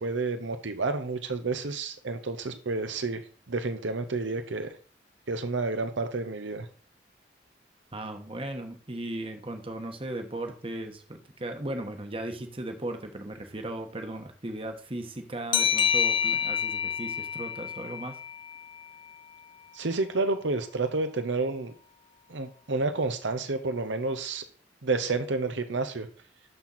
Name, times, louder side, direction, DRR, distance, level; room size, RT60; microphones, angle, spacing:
voice 1, 0.0-3.2 3.5-4.7 5.3-6.7 19.7-21.7 22.3-24.4 24.8-26.1, right 3 dB, 80° right, 8 dB, 0.8 m, -30 dB
voice 2, 7.9-18.1, right 1 dB, 30° right, 5 dB, 1.2 m, -37 dB
sound 1, 15.5-18.9, left 8 dB, 25° left, 0.4 m, -28 dB
12.0 x 4.4 x 4.1 m, 0.41 s
head